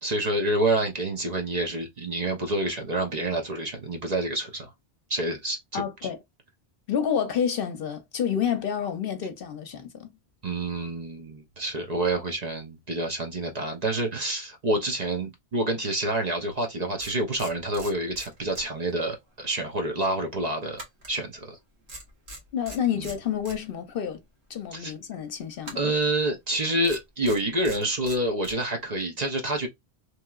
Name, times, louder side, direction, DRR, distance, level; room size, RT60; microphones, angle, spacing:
voice 1, 0.0-4.7 5.1-5.8 10.4-20.8 21.1-21.6 22.9-23.1 24.7-24.9 25.7-29.7, right 1 dB, 45° right, 0.7 m, -28 dB
voice 2, 5.7-6.2 6.9-10.1 22.5-24.2 24.5-25.9, left 8 dB, 65° left, 0.8 m, -29 dB
sound 1, 16.5-16.6 17.0-19.0 19.3-19.5 20.8-21.6 21.9-23.6 25.6-26.1 26.8-28.6, right 1 dB, 80° right, 1.3 m, -43 dB
3.0 x 2.7 x 2.3 m
omnidirectional pair, 1.1 m